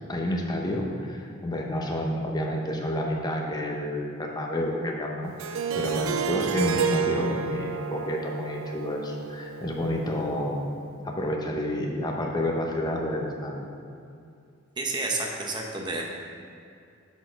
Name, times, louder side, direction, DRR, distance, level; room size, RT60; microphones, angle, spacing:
voice 1, 0.1-10.7 11.0-13.7, left 1 dB, 20° left, 0 dB, 0.8 m, -29 dB
Harp, 5.4-10.3, right 7 dB, 65° right, 0.3 m, -30 dB
voice 2, 14.8-16.0, right 2 dB, 20° right, 0 dB, 0.8 m, -30 dB
7.1 x 4.2 x 6.4 m, 2.5 s
head